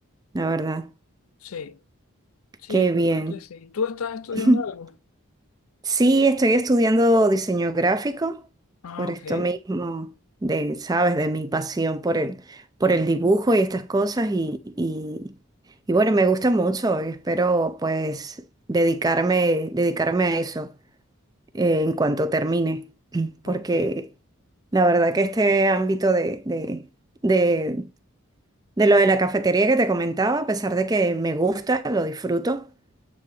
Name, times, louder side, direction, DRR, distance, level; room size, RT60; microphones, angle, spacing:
voice 1, 0.3-0.9 2.7-3.4 4.4-4.6 5.8-8.4 9.0-10.1 10.4-15.3 15.9-18.4 18.7-20.7 21.5-22.9 23.1-24.1 24.7-26.8 27.2-27.9 28.8-32.6, right 2 dB, 15° right, 0.4 m, -22 dB
voice 2, 1.4-1.8 2.6-4.9 8.8-9.5 12.9-13.3 23.5-23.9, left 5 dB, 75° left, 0.5 m, -33 dB
8.4 x 2.8 x 4.7 m
head